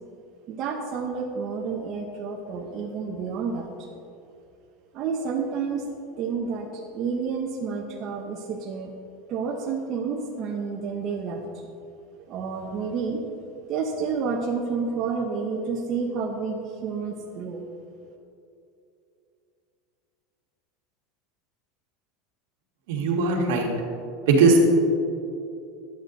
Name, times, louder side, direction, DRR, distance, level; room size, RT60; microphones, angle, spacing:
voice 1, 0.5-3.9 4.9-5.9 6.2-8.9 9.3-11.4 12.2-13.2 13.7-17.6, right 5 dB, 35° right, -1 dB, 0.8 m, -30 dB
voice 2, 22.9-23.7 24.3-24.6, right 3 dB, 75° right, -1 dB, 1.9 m, -19 dB
11.5 x 8.1 x 3.9 m, 2.6 s
supercardioid pair, 160°, 0 cm